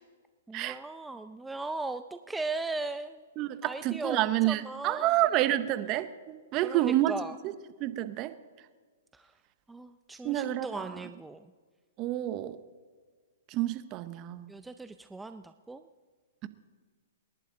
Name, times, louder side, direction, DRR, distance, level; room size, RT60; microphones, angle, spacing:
voice 1, 0.5-3.2 3.6-5.1 6.6-7.4 9.1-9.3 9.7-11.5 14.5-15.8, right 3 dB, 5° right, 0.5 m, -38 dB
voice 2, 3.4-7.1 7.4-7.5 7.8-8.3 10.2-11.1 12.0-12.6 13.5-14.5 16.4-16.5, right 14 dB, 35° right, 0.9 m, -29 dB
28.0 x 11.0 x 3.9 m
hypercardioid pair, 140°, 0 cm